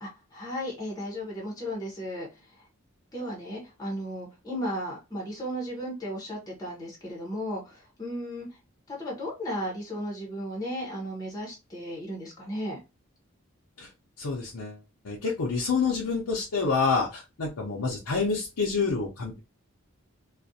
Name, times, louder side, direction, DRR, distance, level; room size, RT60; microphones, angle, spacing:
voice 1, 0.0-2.3 3.1-8.5 8.9-12.8, equal, 15° left, -2 dB, 0.7 m, -35 dB
voice 2, 14.2-14.8 15.0-19.4, left 4 dB, 85° left, -3 dB, 0.6 m, -28 dB
2.4 x 2.1 x 2.6 m, 0.26 s
head